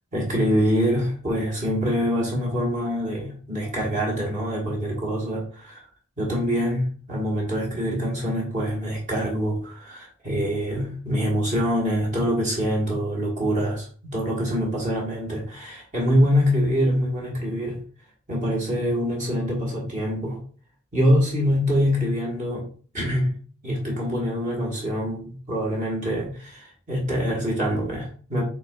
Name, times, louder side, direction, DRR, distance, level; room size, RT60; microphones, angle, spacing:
voice 1, 0.1-5.8 6.2-17.8 18.3-20.4 20.9-22.7 22.9-23.3 23.6-28.4, equal, 35° right, -3 dB, 1.3 m, -25 dB
5.8 x 3.6 x 2.3 m, 0.42 s
head